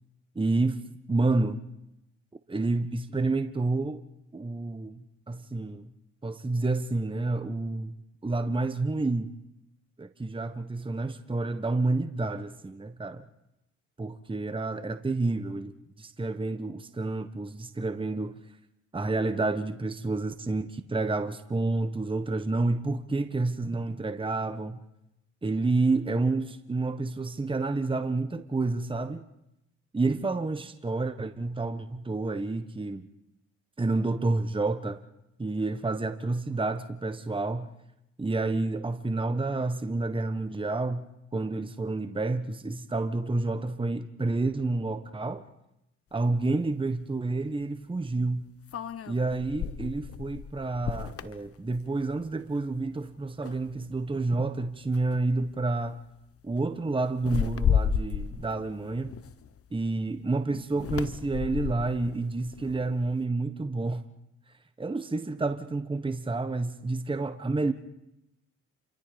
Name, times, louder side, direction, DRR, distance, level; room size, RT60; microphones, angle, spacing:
voice 1, 0.3-0.8 1.1-1.6 2.5-4.0 4.3-5.9 6.2-7.9 8.2-9.3 10.0-13.2 14.0-18.4 18.9-24.8 25.4-29.2 29.9-33.1 33.8-35.0 35.4-37.7 38.2-41.1 41.3-45.4 46.1-48.5 49.1-56.0 56.4-59.1 59.7-64.0 64.8-67.7, right 3 dB, 15° right, 1.4 m, -29 dB
sound 1, 46.4-46.5 48.7-52.3 52.7-53.0 53.4-54.1 54.9-55.1 55.5-55.8 57.2-59.8 60.7-63.1, left 7 dB, 50° left, 1.3 m, -32 dB
28.5 x 24.0 x 5.3 m
supercardioid pair, 70°, 30 cm